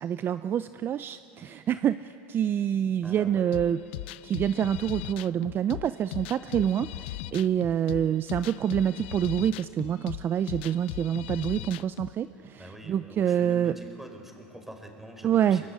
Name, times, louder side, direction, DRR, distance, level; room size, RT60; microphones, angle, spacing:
voice 1, 0.0-3.8 4.2-13.7 15.2-15.6, right 9 dB, 40° right, 13 dB, 0.5 m, -27 dB
voice 2, 3.0-3.4 12.6-15.7, equal, 5° right, 4 dB, 4.4 m, -45 dB
sound 1, 3.5-12.1, left 17 dB, 80° left, 0.5 m, -38 dB
24.0 x 23.0 x 9.9 m, 2.9 s
supercardioid pair, 100°, 6 cm